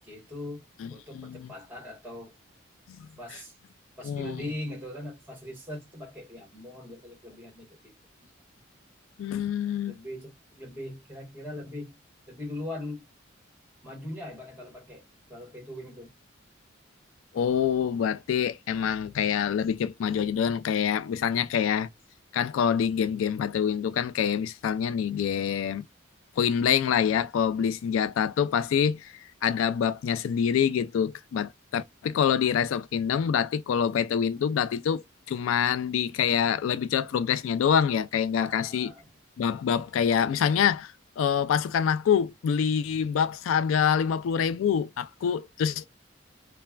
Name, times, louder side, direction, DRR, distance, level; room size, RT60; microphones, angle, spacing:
voice 1, 0.0-0.6 0.9-2.3 3.2-3.5 4.0-7.9 9.9-12.0 12.3-13.0 13.8-15.0 15.3-16.1 38.4-39.0, left 1 dB, 10° right, 1.3 m, -40 dB
voice 2, 0.8-1.5 2.9-3.1 4.0-4.4 9.2-10.0 17.3-21.9 22.3-25.8 26.4-38.9 39.4-45.9, left 8 dB, 85° left, 0.3 m, -26 dB
3.2 x 2.1 x 2.3 m
head